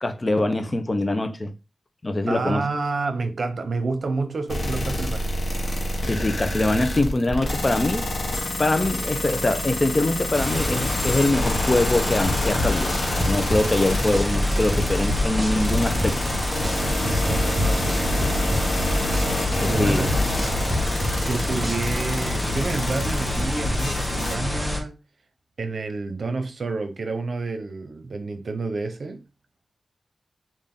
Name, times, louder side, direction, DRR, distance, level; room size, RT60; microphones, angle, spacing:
voice 1, 0.0-1.5 2.0-2.7 6.1-8.0 8.6-16.3 19.6-20.1, left 2 dB, 35° left, 0.6 m, -23 dB
voice 2, 2.3-5.4 17.0-19.1 19.6-20.6 21.1-25.0 25.6-29.2, right 3 dB, 70° right, 0.7 m, -29 dB
sound 1, 4.5-24.4, left 1 dB, 75° left, 1.1 m, -28 dB
sound 2, 10.3-24.8, left 1 dB, 10° left, 1.2 m, -27 dB
sound 3, 12.3-14.3 14.8-16.8 17.1-19.3 19.8-22.0, left 1 dB, 30° right, 1.7 m, -27 dB
3.5 x 2.6 x 3.7 m
wide cardioid pair, 65°, 0 cm